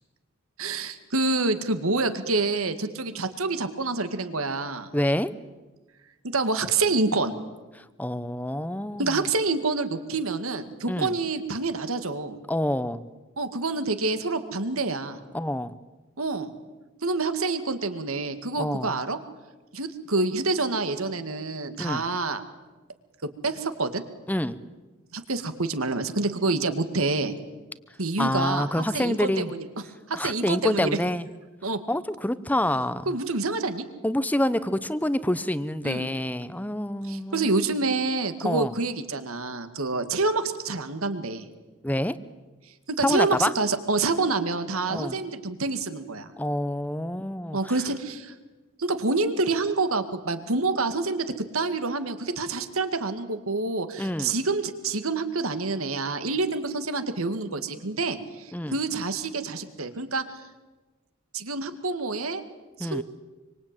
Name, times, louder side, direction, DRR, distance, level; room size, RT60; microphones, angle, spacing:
voice 1, 0.6-4.9 6.3-7.3 9.0-12.4 13.4-15.2 16.2-16.5 17.0-19.2 19.7-22.4 23.4-24.0 25.1-27.3 28.0-28.7 28.9-29.7 30.1-30.9 31.6-31.8 33.1-33.9 35.8-36.1 37.1-41.4 42.9-46.3 47.5-48.3 48.8-51.3 51.5-60.2 61.3-62.4 62.8-63.0, right 3 dB, 80° right, 9 dB, 2.1 m, -27 dB
voice 2, 4.9-5.3 7.8-9.2 10.9-11.1 12.5-13.1 15.3-15.8 18.6-18.9 21.8-22.0 24.3-24.6 28.2-29.5 30.1-31.3 31.9-33.1 34.0-37.5 38.4-38.7 41.8-42.2 43.0-43.5 44.9-45.2 46.4-47.6 54.0-54.3 58.5-58.8 62.8-63.0, left 1 dB, 5° left, 14 dB, 0.9 m, -27 dB
26.5 x 25.0 x 9.1 m, 1.2 s
head